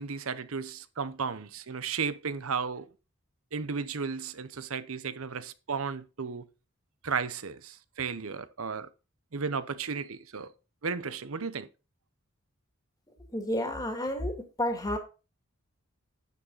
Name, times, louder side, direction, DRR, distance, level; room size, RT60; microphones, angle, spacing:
voice 1, 0.0-2.9 3.5-6.5 7.0-8.9 9.3-10.5 10.8-11.7, right 5 dB, 75° right, 0.8 m, -34 dB
voice 2, 13.3-14.3 14.6-15.0, left 1 dB, 20° left, 2.1 m, -30 dB
9.4 x 7.4 x 4.1 m
head